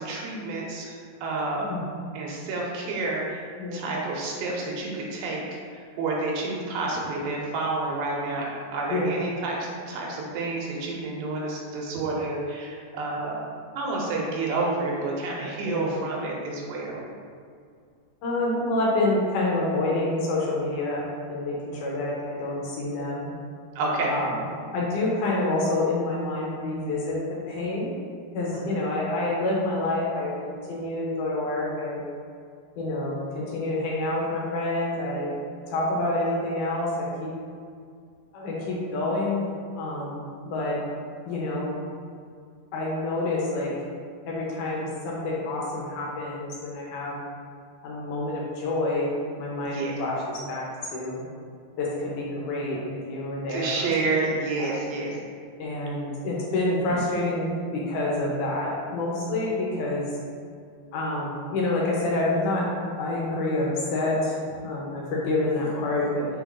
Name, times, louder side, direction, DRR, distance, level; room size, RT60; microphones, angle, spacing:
voice 1, 0.0-1.6 2.1-3.4 3.7-5.4 5.7-13.4 13.8-17.0 23.8-24.1 28.5-28.8 49.6-49.9 53.5-55.2, right 3 dB, 90° right, -2 dB, 2.4 m, -29 dB
voice 2, 3.6-3.9 8.9-9.2 15.6-16.0 18.2-23.3 24.1-27.9 28.3-32.0 32.8-35.4 35.7-37.3 38.3-40.8 41.3-41.8 42.7-43.7 44.3-47.2 47.8-51.2 51.8-53.9 54.2-54.3 54.6-54.7 55.6-60.0 60.9-62.7 63.0-66.3, left 2 dB, 75° left, -4 dB, 2.0 m, -28 dB
6.4 x 2.9 x 2.5 m, 2.2 s
omnidirectional pair, 4.1 m